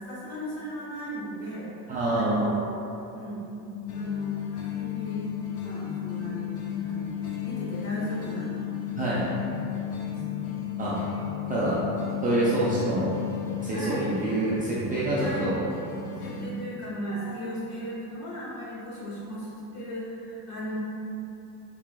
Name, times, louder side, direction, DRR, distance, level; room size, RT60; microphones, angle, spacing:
voice 1, 0.0-2.7 3.2-3.4 3.9-5.3 5.5-8.5 9.6-10.6 11.5-11.6 13.7-14.1 15.2-15.5 16.2-20.8, right 1 dB, 40° left, -6 dB, 1.1 m, -36 dB
voice 2, 1.9-2.5 9.0-9.3 10.8-10.9 11.5-11.8 12.2-13.1 13.6-15.6, right 1 dB, 20° right, -9 dB, 0.4 m, -26 dB
sound 1, 3.6-13.6, left 19 dB, 15° left, 1.3 m, -34 dB
sound 2, 3.9-16.5, left 2 dB, 60° left, 0.6 m, -39 dB
4.7 x 4.0 x 2.2 m, 2.8 s
cardioid pair, 165°, 42 cm